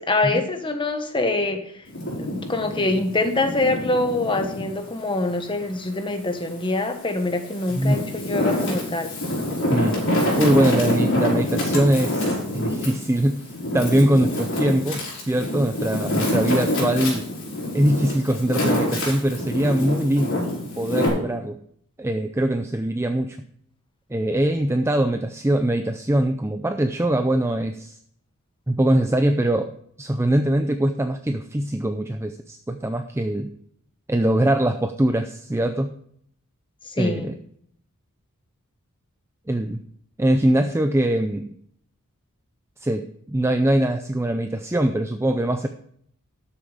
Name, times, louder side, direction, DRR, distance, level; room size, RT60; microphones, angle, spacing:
voice 1, 0.0-1.8 2.2-9.1 36.8-37.3, left 2 dB, 20° left, 7 dB, 1.2 m, -25 dB
Wind, 1.9-4.7 5.2-6.5 7.1-21.1, left 1 dB, 60° left, 4.8 m, -26 dB
voice 2, 9.7-10.0 10.3-17.3 17.7-20.5 20.8-21.6 22.0-23.4 24.1-28.0 28.7-29.7 30.0-33.5 34.1-35.9 37.0-37.4 39.5-39.8 40.2-41.5 42.8-45.7, right 1 dB, 10° right, 7 dB, 0.4 m, -22 dB
12.5 x 7.3 x 5.0 m, 0.66 s
head